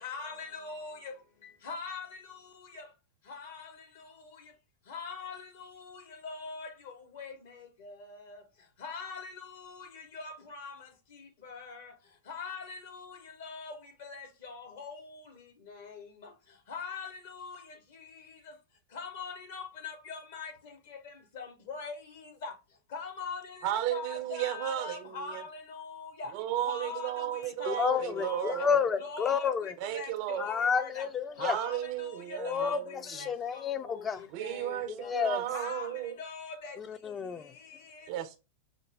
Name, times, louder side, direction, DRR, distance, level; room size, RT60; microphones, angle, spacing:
voice 1, 0.0-1.1 1.6-2.1 2.7-2.8 3.3-3.7 4.9-6.7 7.2-7.3 7.8-7.9 8.8-10.7 11.4-11.9 12.3-13.7 14.0-14.9 15.8-16.0 16.7-17.5 18.9-20.5 21.3-21.9 22.4-22.5 22.9-26.3 26.6-27.1 27.6-28.5 29.0-31.1 31.4-32.8 33.1-34.1 34.4-35.1 35.5-35.9 36.2-36.8, left 4 dB, 55° left, 1.0 m, -42 dB
voice 2, 23.6-25.4 26.3-28.8 29.8-30.5 31.4-33.2 34.3-36.2 38.1-38.4, right 12 dB, 45° right, 0.4 m, -34 dB
voice 3, 27.7-29.7 30.4-31.6 32.4-34.2 34.9-35.4 36.8-37.5, left 7 dB, 20° left, 0.4 m, -30 dB
4.9 x 2.1 x 3.2 m
figure-of-eight pair, 90°, 0 cm